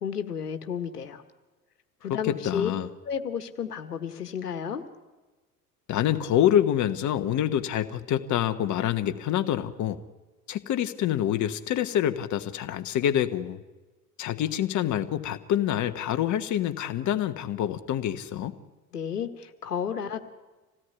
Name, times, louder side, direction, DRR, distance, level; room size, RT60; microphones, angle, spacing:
voice 1, 0.0-1.2 2.0-2.7 3.0-4.8 18.9-20.3, left 7 dB, 75° left, 8 dB, 1.6 m, -32 dB
voice 2, 2.1-2.9 5.9-10.0 10.5-13.6 14.2-18.5, left 11 dB, 40° left, 9 dB, 1.4 m, -26 dB
26.0 x 17.5 x 9.5 m, 1.2 s
figure-of-eight pair, 65°, 47 cm